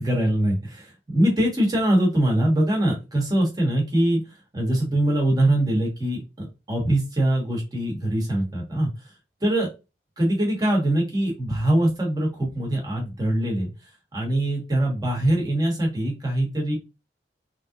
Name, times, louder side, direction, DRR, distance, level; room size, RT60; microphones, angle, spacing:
voice 1, 0.0-4.2 4.5-8.9 9.4-9.7 10.2-13.7 14.1-16.8, right 1 dB, 20° right, -1 dB, 1.5 m, -23 dB
3.7 x 2.9 x 2.5 m, 0.27 s
head